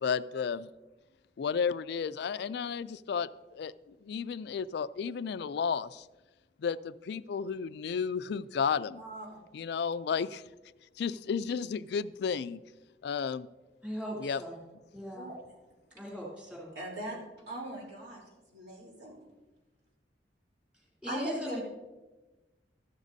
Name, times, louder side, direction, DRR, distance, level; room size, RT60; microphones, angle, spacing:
voice 1, 0.0-0.7 1.4-6.1 6.6-9.0 9.5-10.4 11.0-12.6 13.0-13.5 14.2-14.4, left 6 dB, 65° left, 16 dB, 0.3 m, -33 dB
voice 2, 9.0-9.4 15.1-15.4 16.7-17.2 17.5-19.2 21.1-21.6, right 1 dB, 65° right, -3 dB, 3.4 m, -40 dB
voice 3, 13.8-14.6 14.9-15.3 15.9-16.7 20.7-21.6, equal, 5° right, -5 dB, 3.0 m, -39 dB
14.0 x 12.5 x 2.7 m, 1.1 s
head